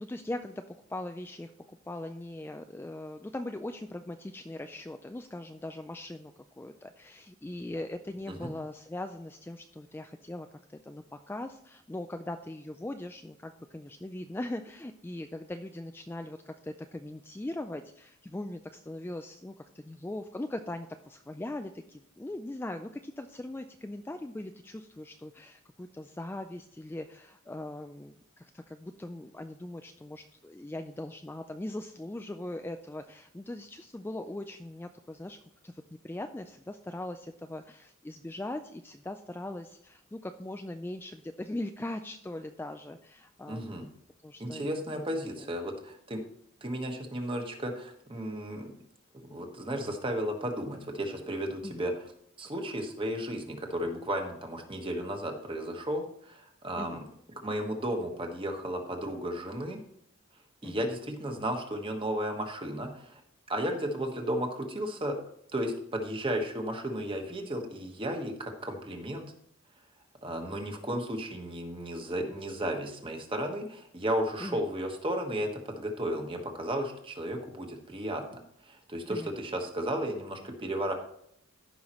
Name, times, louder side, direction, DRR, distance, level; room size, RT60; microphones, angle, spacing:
voice 1, 0.0-35.4 35.6-43.9 44.2-45.0 45.4-45.5 51.6-51.8 56.8-57.0 60.6-60.9 74.4-74.6 79.1-79.3, left 1 dB, 10° left, 6 dB, 0.3 m, -40 dB
voice 2, 43.5-43.9 44.4-46.2 46.6-48.7 49.2-51.9 52.4-57.0 57.4-59.8 60.6-63.2 63.5-65.2 65.5-69.3 70.2-78.4 78.7-80.9, right 1 dB, 25° right, 3 dB, 1.3 m, -34 dB
14.5 x 5.6 x 3.0 m, 0.72 s
head